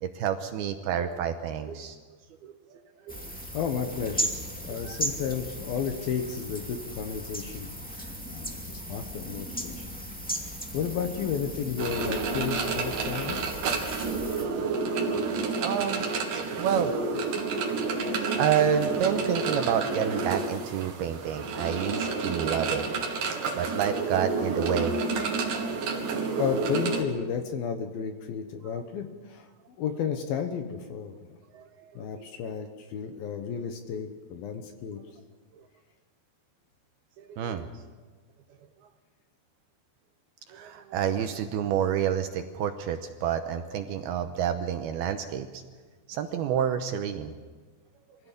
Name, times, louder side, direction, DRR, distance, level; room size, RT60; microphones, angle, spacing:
voice 1, 0.0-2.0 2.4-3.3 4.7-5.0 15.6-16.0 16.6-16.9 17.3-17.5 17.7-17.9 18.4-23.1 23.5-25.9 28.7-28.8 31.5-32.3 37.2-37.7 40.5-45.6 46.1-47.3, right 8 dB, 75° right, 7 dB, 2.5 m, -29 dB
sound 1, 3.1-14.4, equal, 5° left, 0.7 m, -37 dB
voice 2, 3.3-4.3 4.6-9.9 10.4-13.4 25.9-29.5 29.8-31.1 32.0-35.0, left 7 dB, 70° left, 7 dB, 2.6 m, -33 dB
sound 2, 11.8-27.0, right 4 dB, 55° right, 3.2 m, -30 dB
24.5 x 16.5 x 8.4 m, 1.4 s
omnidirectional pair, 5.2 m